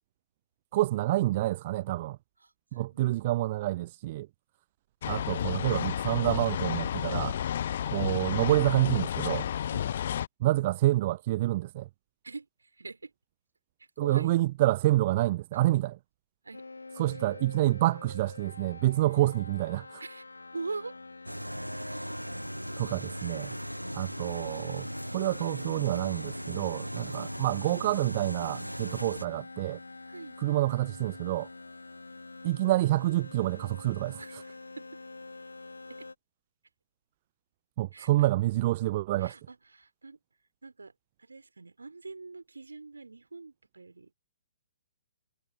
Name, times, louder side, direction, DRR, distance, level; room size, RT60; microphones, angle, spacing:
voice 1, 0.7-2.2 2.7-4.3 5.0-7.4 7.9-9.5 10.4-11.9 14.0-16.0 17.0-20.0 22.8-23.5 23.9-29.8 30.4-31.5 32.4-34.4 37.8-39.4, right 16 dB, 35° right, 0.3 m, -28 dB
voice 2, 2.7-3.1 9.7-10.0 12.2-12.5 12.8-13.1 14.0-14.3 16.4-16.6 20.0-20.2 20.5-20.9 30.1-30.4 34.2-34.9 35.9-36.1 37.9-38.1 39.2-40.2 40.6-40.9 41.2-44.1, right 3 dB, 70° right, 4.3 m, -43 dB
sound 1, 5.0-10.3, left 10 dB, 45° left, 0.4 m, -31 dB
sound 2, 16.5-36.1, left 3 dB, 70° left, 2.4 m, -46 dB
sound 3, 21.3-29.3, equal, 90° right, 1.1 m, -38 dB
figure-of-eight pair, 125°, 0 cm